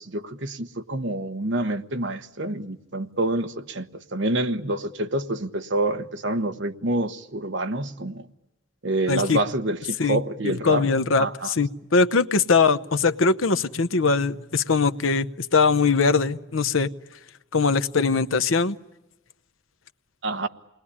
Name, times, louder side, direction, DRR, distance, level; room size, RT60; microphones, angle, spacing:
voice 1, 0.0-8.3 8.8-10.9 11.2-11.5 20.2-20.5, right 2 dB, 65° right, 1.2 m, -27 dB
voice 2, 9.1-9.4 10.0-16.9 17.5-18.8, left 4 dB, 85° left, 0.9 m, -21 dB
28.5 x 20.5 x 10.0 m
head